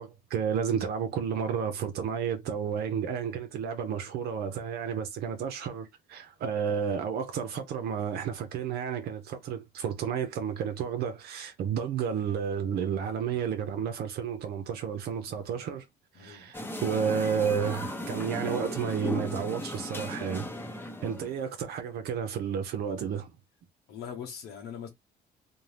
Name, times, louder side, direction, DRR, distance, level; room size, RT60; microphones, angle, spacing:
voice 1, 0.0-15.9 16.1-20.5 21.0-23.3, right 7 dB, 70° right, 0.5 m, -31 dB
voice 2, 15.3-15.6 16.2-16.5 21.0-21.3 23.9-24.9, left 7 dB, 75° left, 0.8 m, -42 dB
sound 1, 16.5-21.4, left 1 dB, 10° left, 0.7 m, -36 dB
2.6 x 2.1 x 3.2 m
cardioid pair, 110°, 17 cm